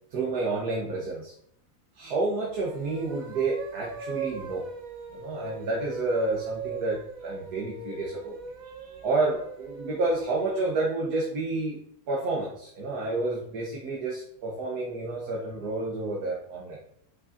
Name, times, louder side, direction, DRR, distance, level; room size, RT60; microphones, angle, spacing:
voice 1, 0.1-1.3 1.9-4.7 5.1-8.3 8.6-16.8, right 3 dB, 85° right, -2 dB, 1.6 m, -30 dB
sound 1, 2.5-10.7, right 5 dB, 65° right, 1.4 m, -40 dB
8.4 x 6.1 x 2.6 m, 0.72 s
omnidirectional pair, 1.6 m